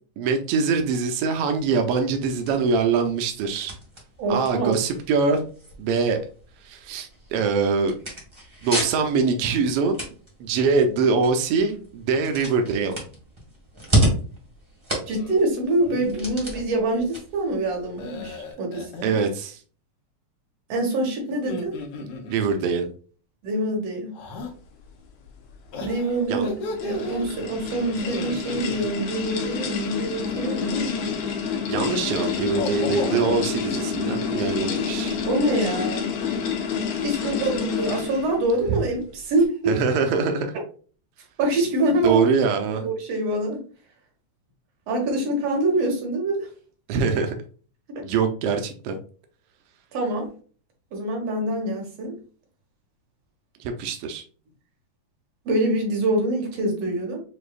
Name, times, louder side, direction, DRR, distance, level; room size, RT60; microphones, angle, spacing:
voice 1, 0.2-3.7 4.3-5.5 5.8-6.2 6.6-7.9 8.6-10.0 10.4-12.9 19.0-19.6 22.3-22.9 26.3-26.5 31.7-35.2 38.7-38.8 39.7-40.6 42.0-42.9 46.9-47.3 48.0-49.0 53.6-54.2, right 5 dB, 85° right, 5 dB, 1.3 m, -23 dB
sound 1, 1.6-18.5, right 1 dB, 20° right, 0.7 m, -32 dB
voice 2, 4.2-4.7 15.1-18.9 20.7-22.1 23.4-24.1 25.8-26.5 26.8-30.8 35.3-36.1 37.0-39.7 41.4-42.3 42.8-43.6 44.9-46.5 47.9-48.1 49.9-50.3 50.9-52.2 55.5-57.2, right 1 dB, 60° right, 0 dB, 2.3 m, -25 dB
sound 2, 15.0-15.4 15.8-16.3 18.0-19.2 21.3-22.7 24.1-24.5 25.7-27.3 28.0-28.8 30.3-31.4 32.4-33.4, left 2 dB, 65° left, 1.7 m, -34 dB
sound 3, 26.2-38.4, left 6 dB, 85° left, 2.4 m, -29 dB
6.3 x 2.7 x 2.4 m, 0.40 s
omnidirectional pair, 3.4 m